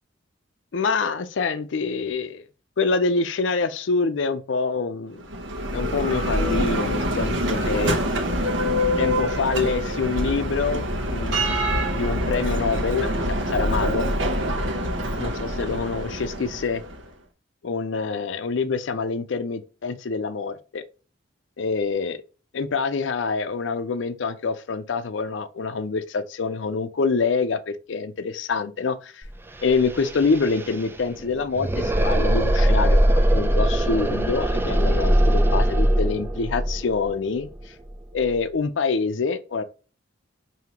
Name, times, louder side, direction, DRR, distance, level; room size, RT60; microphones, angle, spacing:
voice 1, 0.7-2.4 2.8-5.2 5.7-8.0 9.0-10.8 11.1-14.0 15.2-16.8 17.6-20.8 21.6-22.2 22.5-29.2 29.6-33.0 33.3-37.5 38.1-39.6, left 4 dB, 70° left, 0.5 m, -26 dB
Bell, 5.2-17.0, equal, 70° right, 0.9 m, -25 dB
sound 1, 29.2-29.3 29.5-38.3, right 1 dB, 10° right, 0.4 m, -21 dB
5.0 x 2.8 x 2.9 m
head